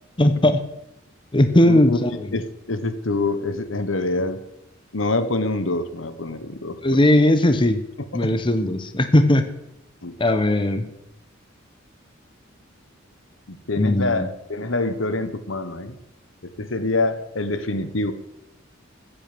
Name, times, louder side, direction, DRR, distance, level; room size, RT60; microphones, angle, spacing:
voice 1, 0.2-0.7 1.3-2.3 6.8-7.8 8.1-9.5 10.2-10.9 13.8-14.3, left 1 dB, 25° left, 9 dB, 1.0 m, -18 dB
voice 2, 1.6-4.4 4.9-7.2 8.1-8.3 10.0-10.1 13.5-16.0 16.6-18.1, left 2 dB, 75° left, 12 dB, 1.3 m, -26 dB
14.5 x 8.7 x 6.9 m, 0.83 s
head